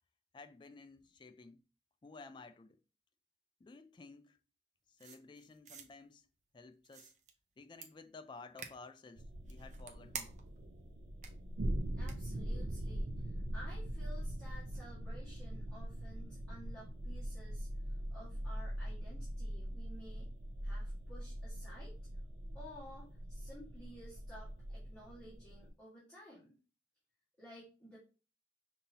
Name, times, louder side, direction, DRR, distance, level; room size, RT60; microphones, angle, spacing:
voice 1, 0.3-1.6 2.0-2.8 3.6-4.4 4.9-6.3 6.5-7.1 7.6-10.3, left 3 dB, 25° left, 0.3 m, -54 dB
sound 1, 5.0-5.9 6.8-7.3 7.8-7.9 8.6-8.7 9.4-10.6 11.2-11.3 12.1-12.2, right 6 dB, 45° right, 0.6 m, -47 dB
sound 2, 9.2-25.7, right 1 dB, 90° right, 0.5 m, -42 dB
voice 2, 11.9-17.7 18.1-20.3 20.6-21.9 22.5-26.5 27.4-28.0, equal, 5° left, 1.6 m, -54 dB
5.3 x 2.8 x 2.8 m
head